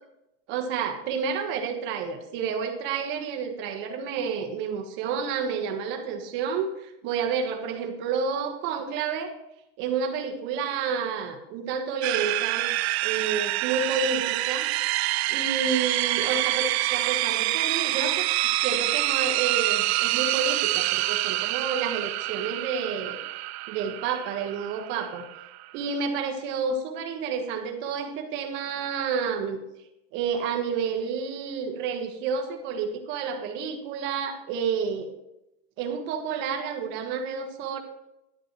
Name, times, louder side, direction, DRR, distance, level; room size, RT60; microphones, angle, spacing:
voice 1, 0.5-9.3 9.8-12.7 13.0-14.7 15.3-18.3 18.6-23.2 23.7-25.2 25.7-29.6 30.1-35.1 35.8-37.8, right 6 dB, 35° right, 4 dB, 1.3 m, -30 dB
sound 1, 12.0-26.0, right 19 dB, 80° right, 0.5 m, -27 dB
11.0 x 10.5 x 3.1 m, 0.87 s
supercardioid pair, 170°, 31 cm